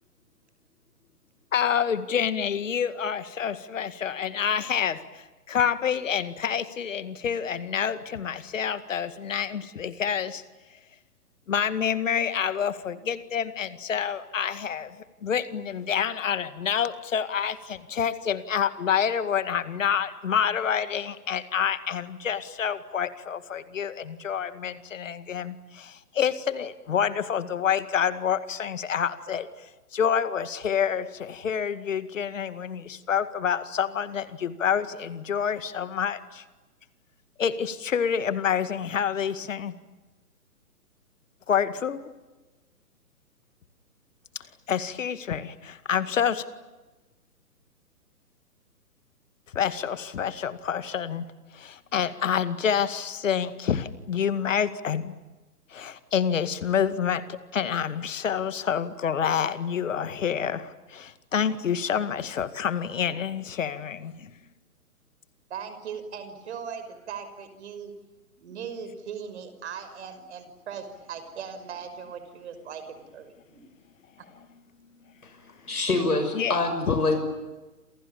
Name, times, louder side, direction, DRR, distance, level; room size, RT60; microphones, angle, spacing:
voice 1, 1.5-10.4 11.5-15.0 15.2-36.4 37.4-39.7 41.5-42.1 44.4-46.5 49.5-51.2 51.5-55.1 55.7-64.3 74.3-74.5 76.3-76.6 76.9-77.0, left 8 dB, 55° left, 13 dB, 2.2 m, -28 dB
voice 2, 65.5-67.9 68.4-73.6, right 7 dB, 45° right, 10 dB, 5.8 m, -39 dB
voice 3, 75.7-77.2, left 3 dB, 75° left, 6 dB, 6.6 m, -25 dB
29.5 x 28.0 x 7.2 m, 1.2 s
figure-of-eight pair, 130°, 45 cm